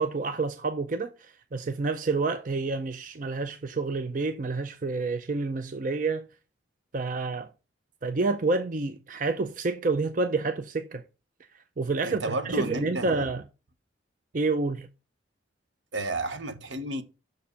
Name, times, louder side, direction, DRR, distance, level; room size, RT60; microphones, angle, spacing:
voice 1, 0.0-6.3 6.9-7.5 8.0-11.0 11.5-13.4 14.3-14.9, right 3 dB, 40° right, 0.5 m, -29 dB
voice 2, 12.0-13.2 15.9-17.0, right 2 dB, 70° right, 1.1 m, -32 dB
6.4 x 4.7 x 6.7 m
head